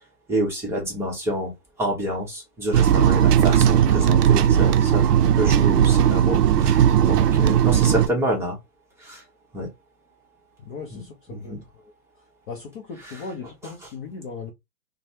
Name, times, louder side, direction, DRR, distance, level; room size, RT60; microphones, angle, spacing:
voice 1, 0.3-1.5 1.8-5.1 5.4-8.6 9.0-9.2 9.5-9.7 10.9-11.0 11.3-11.6, equal, 5° right, 0.9 m, -28 dB
sound 1, 2.7-8.1, right 9 dB, 70° right, 0.5 m, -17 dB
voice 2, 10.6-11.9 12.5-14.5, left 4 dB, 30° left, 0.5 m, -38 dB
3.1 x 2.1 x 2.7 m
hypercardioid pair, 115°, 50 cm